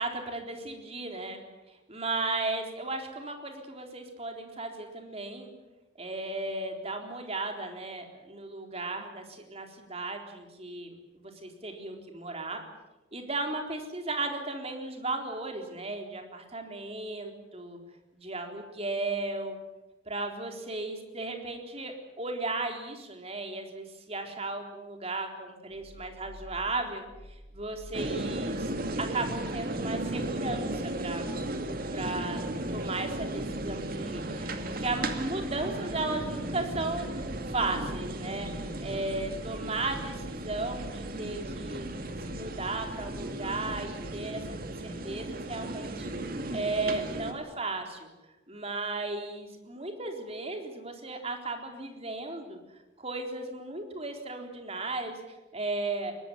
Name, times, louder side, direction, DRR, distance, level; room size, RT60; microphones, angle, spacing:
voice 1, 0.0-1.4 1.9-5.5 6.0-12.6 13.1-17.8 18.1-19.6 20.0-28.7 29.0-31.2 31.9-32.4 32.7-41.9 42.2-48.1 48.5-52.6 53.0-56.1, right 2 dB, 30° right, 4 dB, 4.0 m, -35 dB
sound 1, 25.7-44.1, equal, 85° right, 2.4 m, -48 dB
sound 2, 27.9-47.3, right 1 dB, 45° right, 2.3 m, -35 dB
23.0 x 19.0 x 9.9 m, 1.1 s
head